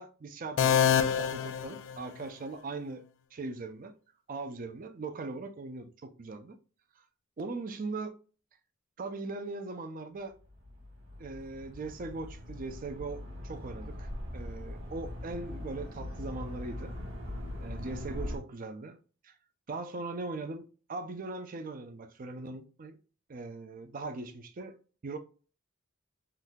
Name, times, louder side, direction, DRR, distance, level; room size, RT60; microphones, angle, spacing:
voice 1, 0.0-3.0 3.3-3.9 4.3-6.6 7.4-8.2 9.0-10.4 11.2-16.9 17.6-19.0 19.2-19.3 19.7-23.0 23.3-24.8 25.0-25.2, right 3 dB, 45° right, 0.5 m, -40 dB
sound 1, 0.6-2.5, left 8 dB, 70° left, 0.4 m, -27 dB
sound 2, 10.4-18.4, left 1 dB, 85° right, 1.5 m, -41 dB
3.8 x 2.7 x 2.2 m
head